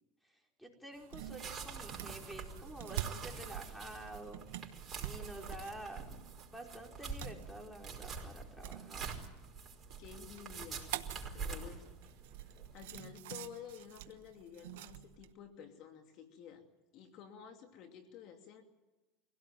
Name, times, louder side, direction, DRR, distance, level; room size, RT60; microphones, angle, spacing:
voice 1, 0.2-4.5 5.0-6.2 6.5-9.1, right 1 dB, ahead, 1 dB, 5.0 m, -49 dB
sound 1, 0.9-15.3, right 12 dB, 80° right, 1.2 m, -47 dB
sound 2, 1.2-13.0, right 5 dB, 30° right, 5.1 m, -46 dB
voice 2, 10.0-11.9 12.7-16.6 16.9-18.6, left 8 dB, 55° left, 5 dB, 2.6 m, -52 dB
24.5 x 17.0 x 9.3 m, 1.1 s
supercardioid pair, 110°, 0 cm